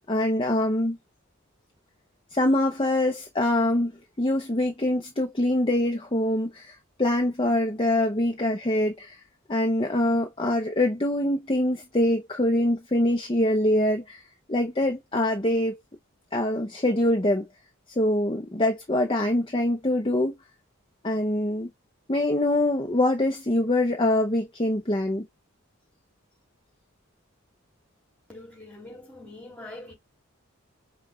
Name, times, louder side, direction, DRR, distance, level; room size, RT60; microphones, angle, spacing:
voice 1, 0.1-1.0 2.3-3.9 4.2-9.2 9.5-14.2 14.5-15.8 16.3-17.5 18.0-20.3 21.0-21.7 22.1-25.3, left 1 dB, 25° left, 0.7 m, -24 dB
voice 2, 28.3-29.9, left 2 dB, 5° left, 2.3 m, -43 dB
5.7 x 2.3 x 3.1 m
head